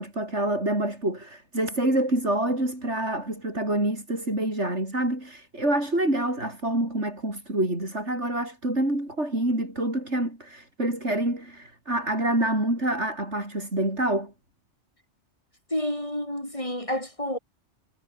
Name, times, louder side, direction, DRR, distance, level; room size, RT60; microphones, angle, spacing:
voice 1, 0.0-14.3, right 1 dB, 75° right, 8.4 m, -27 dB
voice 2, 15.7-17.4, left 1 dB, 30° left, 5.6 m, -29 dB
omnidirectional pair, 1.2 m